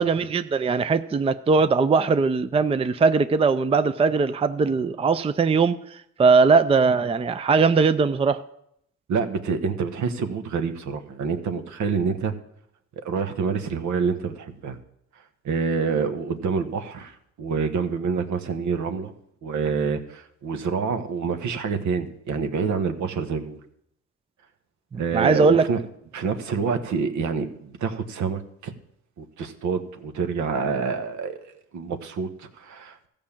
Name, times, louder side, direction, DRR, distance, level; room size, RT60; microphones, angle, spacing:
voice 1, 0.0-5.8 6.2-8.4 25.1-25.6, right 4 dB, 20° right, 0.5 m, -20 dB
voice 2, 9.1-12.3 13.0-14.8 15.4-19.1 19.4-23.6 25.0-25.8 26.1-28.7 29.2-31.4 31.7-33.1, right 5 dB, 70° right, 1.2 m, -27 dB
14.0 x 5.2 x 7.3 m
cardioid pair, 90°, 30 cm